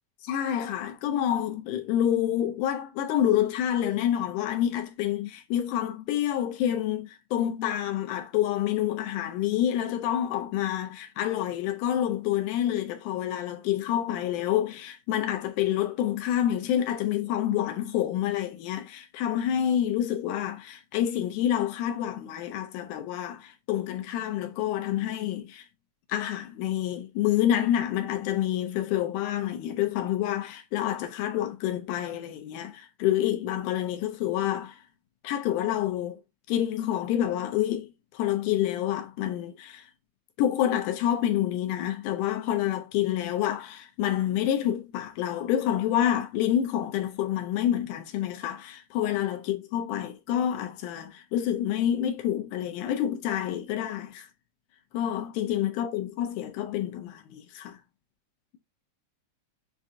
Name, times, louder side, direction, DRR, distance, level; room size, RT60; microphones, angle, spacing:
voice 1, 0.2-25.7 26.1-34.8 35.2-36.2 36.5-39.9 40.4-54.3 54.9-57.8, left 11 dB, 85° left, 2.1 m, -28 dB
7.2 x 2.5 x 2.6 m
omnidirectional pair, 3.5 m